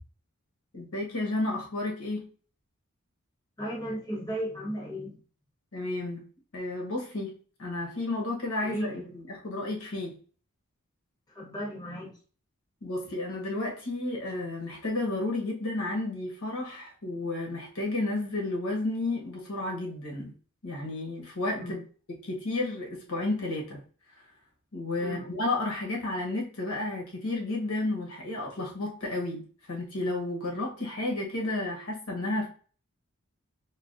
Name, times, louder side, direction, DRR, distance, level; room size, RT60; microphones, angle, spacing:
voice 1, 0.7-2.3 5.7-6.2 6.5-7.3 7.6-10.2 12.8-20.3 20.6-21.8 22.2-23.8 24.7-32.5, left 2 dB, 75° left, -1 dB, 1.1 m, -32 dB
voice 2, 3.6-5.2 8.6-9.1 11.3-12.2 21.6-21.8 25.0-25.3, equal, 20° left, -3 dB, 0.9 m, -35 dB
4.8 x 2.2 x 2.5 m, 0.41 s
head